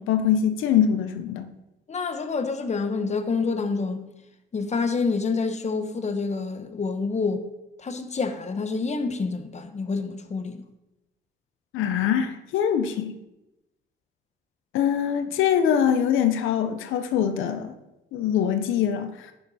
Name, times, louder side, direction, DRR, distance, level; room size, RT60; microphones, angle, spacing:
voice 1, 0.0-1.5 11.7-13.1 14.7-17.8 18.1-19.3, left 8 dB, 85° left, 0.7 m, -23 dB
voice 2, 1.9-4.1 4.5-7.5 7.8-10.6, left 4 dB, 35° left, 1.1 m, -27 dB
10.5 x 6.8 x 4.2 m
cardioid pair, 90°, 20 cm